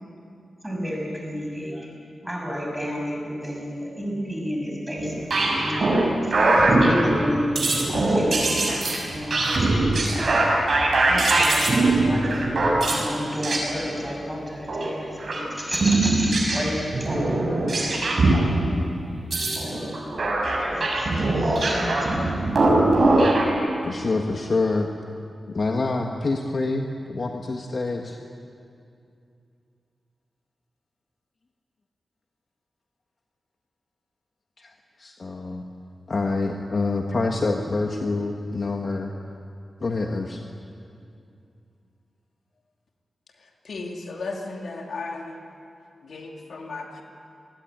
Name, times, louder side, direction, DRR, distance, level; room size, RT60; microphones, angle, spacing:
voice 1, 0.6-1.9 2.2-22.6, equal, 5° right, 0 dB, 6.5 m, -32 dB
sound 1, 5.0-6.1 6.3-7.3 7.6-13.0 13.4-13.6 14.7-14.9 15.2-15.4 15.8-18.4 19.2-23.5, right 2 dB, 45° right, 6.7 m, -21 dB
voice 2, 23.8-24.9 25.5-28.2 34.6-35.6 36.1-39.1 39.8-40.4, left 3 dB, 45° left, 2 dB, 1.5 m, -26 dB
voice 3, 43.6-45.4 46.0-47.0, left 3 dB, 70° left, 1 dB, 3.0 m, -35 dB
28.0 x 21.0 x 9.4 m, 2.5 s
wide cardioid pair, 145°, 0 cm